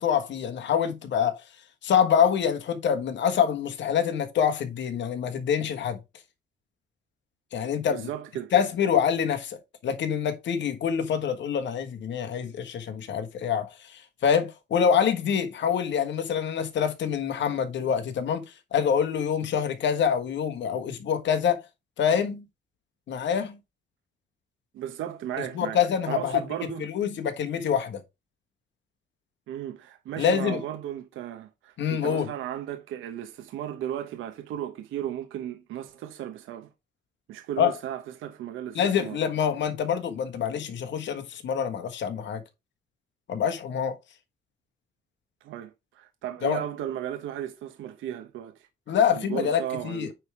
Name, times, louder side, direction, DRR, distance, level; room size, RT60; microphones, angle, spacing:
voice 1, 0.0-1.4 1.8-6.0 7.5-8.1 8.5-18.4 18.7-21.6 22.0-22.4 23.1-23.6 25.5-26.4 26.8-28.0 30.2-30.6 31.8-32.3 37.6-37.7 38.7-42.4 43.3-44.0 46.4-46.6 48.9-50.1, left 8 dB, 65° left, 1.4 m, -26 dB
voice 2, 7.9-8.5 24.7-25.8 26.1-26.9 29.5-36.7 37.3-39.2 45.4-48.5 49.1-50.1, right 11 dB, 85° right, 1.0 m, -35 dB
9.1 x 3.5 x 4.8 m
cardioid pair, 90°, 20 cm